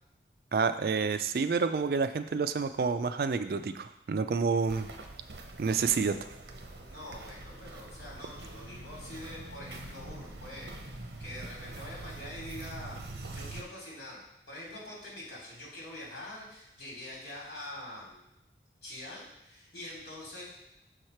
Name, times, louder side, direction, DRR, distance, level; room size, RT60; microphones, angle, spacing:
voice 1, 0.5-4.9 5.6-6.2, right 5 dB, 55° right, 10 dB, 0.3 m, -29 dB
Walk footsteps, 4.6-13.6, right 2 dB, 75° right, 0.8 m, -44 dB
voice 2, 6.7-14.2 14.5-18.2 18.8-20.5, left 1 dB, 70° left, -4 dB, 2.8 m, -45 dB
6.4 x 4.8 x 4.4 m, 0.82 s
head